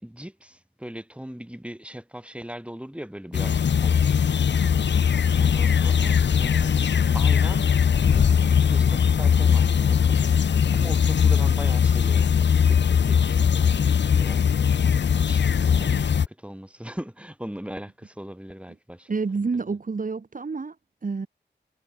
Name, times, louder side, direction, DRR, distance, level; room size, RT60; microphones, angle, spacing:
voice 1, 0.0-4.1 5.4-6.8 7.1-14.7 15.1-19.1, equal, 5° right, 3.0 m, -40 dB
sound 1, 3.3-16.3, left 7 dB, 70° left, 0.5 m, -20 dB
voice 2, 19.1-20.8 21.0-21.3, right 4 dB, 45° right, 0.9 m, -28 dB
cardioid pair, 45°, 19 cm